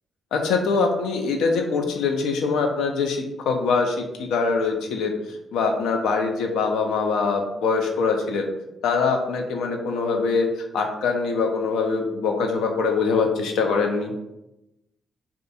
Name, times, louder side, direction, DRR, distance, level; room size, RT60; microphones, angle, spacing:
voice 1, 0.3-8.5 8.8-14.1, left 4 dB, 75° left, 3 dB, 0.3 m, -23 dB
2.4 x 2.3 x 2.6 m, 0.91 s
hypercardioid pair, 45°, 0 cm